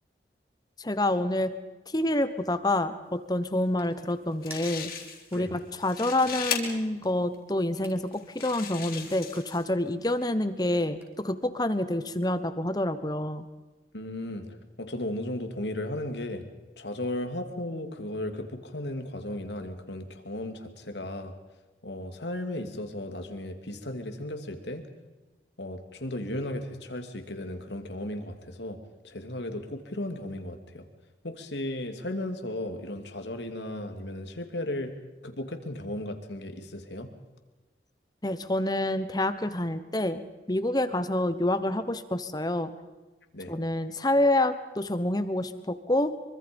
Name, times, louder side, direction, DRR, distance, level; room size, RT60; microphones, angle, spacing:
voice 1, 0.8-1.5 1.9-4.9 5.3-13.4 38.2-42.7 43.5-46.1, left 1 dB, 20° left, 12 dB, 1.1 m, -27 dB
sound 1, 2.7-11.4, right 1 dB, 15° right, 5.4 m, -56 dB
sound 2, 4.1-4.2 4.4-5.4 5.7-6.6 7.3-7.4 8.1-9.6, left 8 dB, 55° left, 3.8 m, -36 dB
voice 2, 13.9-16.5 16.8-21.3 21.8-24.9 25.6-28.8 29.0-30.9 31.2-34.9 35.2-37.1 43.3-43.6, left 1 dB, 80° left, 6 dB, 2.7 m, -35 dB
25.0 x 24.0 x 5.4 m, 1.2 s
head